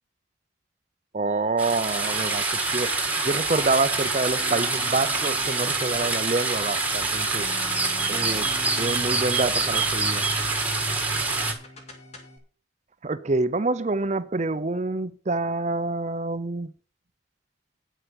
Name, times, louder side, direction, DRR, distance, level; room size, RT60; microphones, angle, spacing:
voice 1, 1.1-3.0 3.2-7.5 8.1-8.5 8.8-10.3 13.0-16.7, right 3 dB, 35° right, 0.6 m, -27 dB
sound 1, 1.6-11.5, right 3 dB, 10° right, 1.5 m, -26 dB
sound 2, 4.4-12.4, left 1 dB, 35° left, 2.5 m, -43 dB
9.1 x 8.0 x 5.8 m
head